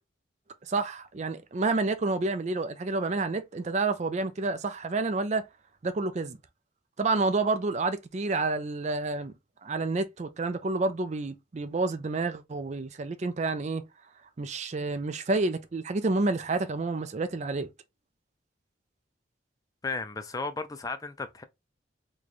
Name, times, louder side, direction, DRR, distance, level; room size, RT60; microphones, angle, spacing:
voice 1, 0.7-5.5 5.8-6.4 7.0-9.3 9.6-13.8 14.4-17.7, right 3 dB, 40° right, 0.4 m, -29 dB
voice 2, 19.8-21.4, left 3 dB, 20° left, 0.4 m, -34 dB
3.2 x 2.3 x 3.9 m
head